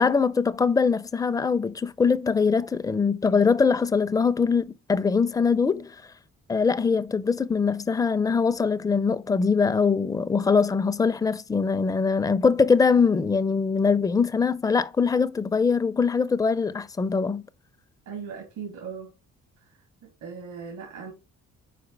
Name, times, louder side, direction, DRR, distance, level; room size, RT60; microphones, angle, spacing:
voice 1, 0.0-6.0 6.5-17.4, left 5 dB, 10° left, 0.4 m, -22 dB
voice 2, 18.1-19.1 20.2-21.1, right 6 dB, 85° right, 2.2 m, -38 dB
5.0 x 4.7 x 4.6 m
cardioid pair, 90°, 30 cm